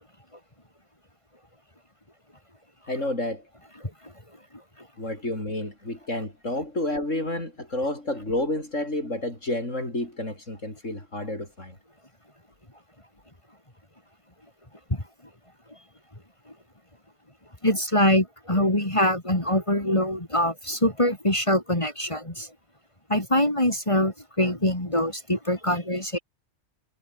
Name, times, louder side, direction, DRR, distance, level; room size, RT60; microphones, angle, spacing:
voice 1, 2.9-3.5 5.0-11.8 15.8-15.9, left 1 dB, 90° left, 8.5 m, -30 dB
voice 2, 3.8-4.1 14.9-15.0 17.6-22.5 23.1-26.2, left 1 dB, 25° left, 3.9 m, -24 dB
omnidirectional pair, 1.3 m